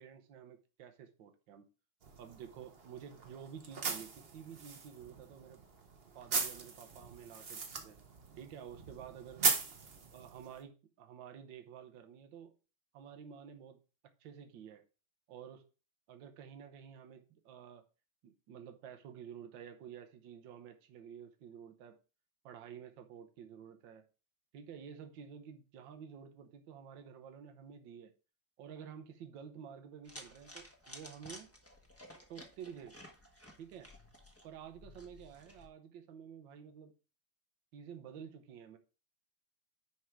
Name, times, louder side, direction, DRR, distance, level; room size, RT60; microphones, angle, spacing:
voice 1, 0.0-1.7 2.2-5.6 6.1-8.0 8.3-9.4 10.1-12.5 12.9-13.8 14.2-14.8 15.3-15.6 16.1-17.8 18.2-22.0 22.4-24.0 24.5-28.1 28.6-31.5 32.3-32.9 33.6-33.9 34.4-36.9 37.7-38.8, right 8 dB, 70° right, 1.7 m, -51 dB
sound 1, 2.0-10.6, right 5 dB, 40° right, 0.9 m, -39 dB
sound 2, 30.0-35.7, left 1 dB, 10° left, 0.9 m, -54 dB
10.5 x 3.7 x 4.6 m
omnidirectional pair, 2.2 m